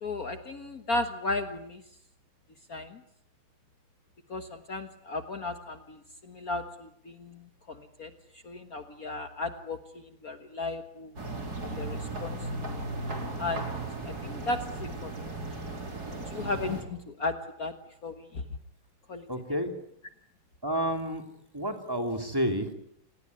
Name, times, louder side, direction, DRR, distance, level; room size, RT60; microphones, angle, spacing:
voice 1, 0.0-1.8 2.7-3.0 4.3-11.2 11.7-12.5 13.4-13.8 14.1-15.3 16.3-17.7 18.0-18.5 19.1-19.3, left 2 dB, 45° left, 8 dB, 1.8 m, -35 dB
sound 1, 11.2-16.8, right 2 dB, 50° right, 4.7 m, -36 dB
voice 2, 19.3-19.7 20.6-21.2 21.5-22.7, equal, 10° right, 5 dB, 3.0 m, -30 dB
29.0 x 19.5 x 9.6 m, 0.74 s
omnidirectional pair, 2.2 m